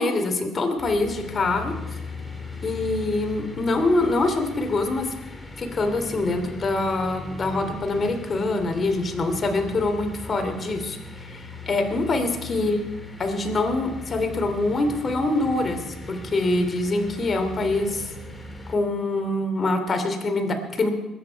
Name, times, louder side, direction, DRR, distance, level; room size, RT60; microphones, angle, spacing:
voice 1, 0.0-1.7 2.6-5.1 5.6-12.8 13.2-18.1 18.7-20.9, left 2 dB, 40° left, 5 dB, 2.9 m, -24 dB
sound 1, 0.8-18.8, left 2 dB, 20° left, 2.6 m, -39 dB
21.5 x 9.4 x 4.7 m, 1.0 s
hypercardioid pair, 55°, 0 cm